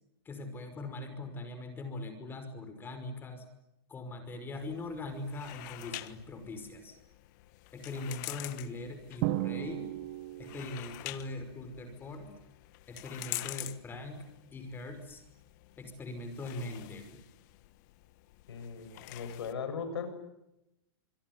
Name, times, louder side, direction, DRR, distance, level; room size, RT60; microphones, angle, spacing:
voice 1, 0.3-3.5 3.9-7.0 7.7-9.9 10.4-12.3 12.9-14.3 14.5-15.2 15.8-17.2, left 2 dB, 15° left, 8 dB, 5.4 m, -41 dB
sound 1, 4.5-19.5, left 19 dB, 45° left, 1.5 m, -47 dB
Drum, 9.2-10.9, right 18 dB, 40° right, 1.2 m, -34 dB
voice 2, 18.5-20.1, left 6 dB, 80° left, 9 dB, 7.5 m, -38 dB
26.5 x 22.0 x 9.6 m, 0.87 s
hypercardioid pair, 140°, 13 cm